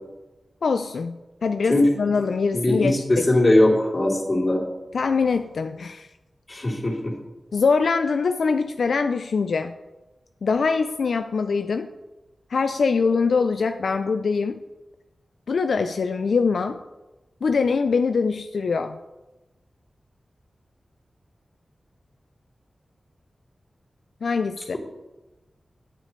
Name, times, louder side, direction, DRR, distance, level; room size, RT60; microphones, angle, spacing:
voice 1, 0.6-3.3 4.9-6.1 7.5-9.7 10.4-11.9 12.5-14.6 15.5-16.8 17.4-19.0 24.2-24.8, left 5 dB, 85° left, 7 dB, 0.4 m, -23 dB
voice 2, 2.5-4.6 6.5-7.1, left 1 dB, 40° left, -4 dB, 3.2 m, -20 dB
9.3 x 9.2 x 3.2 m, 1.1 s
cardioid pair, 55°, 0 cm